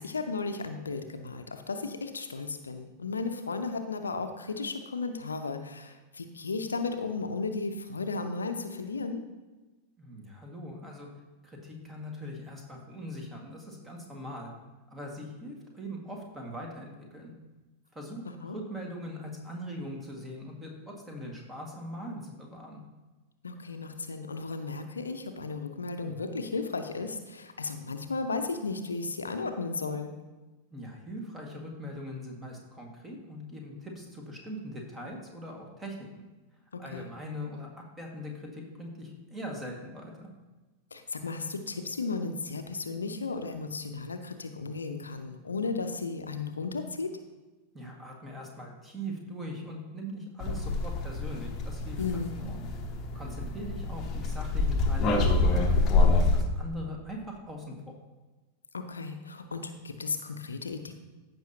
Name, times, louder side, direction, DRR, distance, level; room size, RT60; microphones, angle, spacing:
voice 1, 0.0-9.2 18.4-18.6 23.4-30.1 36.7-37.1 40.9-47.1 52.0-52.3 58.7-60.9, left 4 dB, 75° left, 7 dB, 0.6 m, -34 dB
voice 2, 10.0-11.1 11.4-14.5 14.9-17.3 17.9-22.8 30.7-36.2 36.8-37.7 38.0-40.3 47.7-52.0 52.3-52.6 53.1-57.9, equal, 15° right, 1 dB, 1.8 m, -41 dB
sound 1, 50.4-56.4, left 3 dB, 30° left, 0.9 m, -26 dB
15.0 x 5.5 x 2.9 m, 1.2 s
figure-of-eight pair, 90°, 0 cm